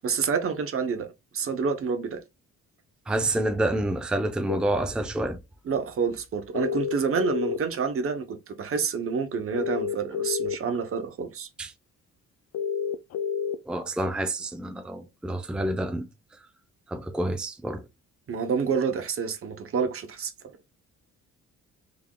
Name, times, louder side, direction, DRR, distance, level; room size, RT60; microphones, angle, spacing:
voice 1, 0.0-2.2 5.7-11.5 18.3-20.3, right 5 dB, 45° right, 0.8 m, -28 dB
voice 2, 3.1-5.4 11.6-11.7 13.7-16.1 16.9-17.8, right 1 dB, 5° right, 0.5 m, -28 dB
sound 1, 4.5-4.6 6.5-7.8 9.5-10.6 12.5-13.6, left 7 dB, 55° left, 0.4 m, -29 dB
3.6 x 3.4 x 2.2 m
cardioid pair, 90°, 30 cm